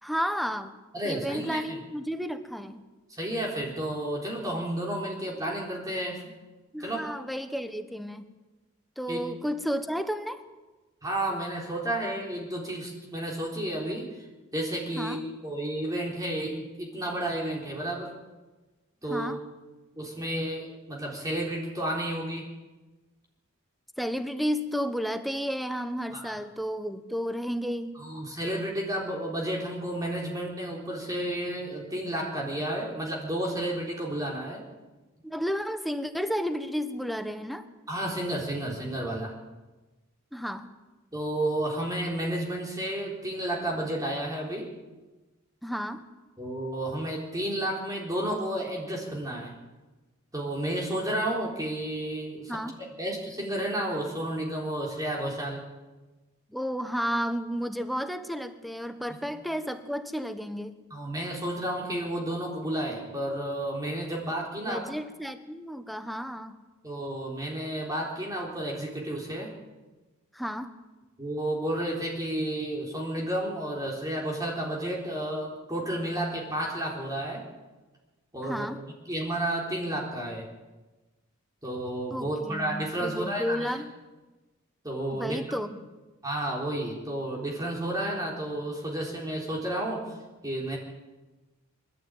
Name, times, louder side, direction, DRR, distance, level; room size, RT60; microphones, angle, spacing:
voice 1, 0.0-0.7 1.0-2.8 6.7-8.3 9.0-10.4 14.9-15.2 19.1-19.4 24.0-27.9 35.2-37.7 40.3-40.7 45.6-46.0 52.5-52.8 56.5-60.8 64.7-66.6 70.3-70.7 78.4-78.8 82.1-83.9 85.1-85.8, equal, ahead, 8 dB, 1.2 m, -32 dB
voice 2, 0.9-1.6 3.1-6.3 6.8-7.0 9.1-9.2 11.0-14.1 14.5-15.2 15.4-18.1 19.0-19.3 20.0-22.5 26.1-26.3 28.0-34.6 37.9-39.3 41.1-44.7 46.4-49.5 50.3-52.6 53.0-55.6 60.9-64.9 66.8-69.5 71.2-77.4 78.3-78.7 79.1-80.5 81.6-83.7 84.8-85.4 86.2-90.1 90.4-90.8, right 1 dB, 15° right, -3 dB, 3.9 m, -31 dB
26.0 x 12.5 x 9.1 m, 1.2 s
head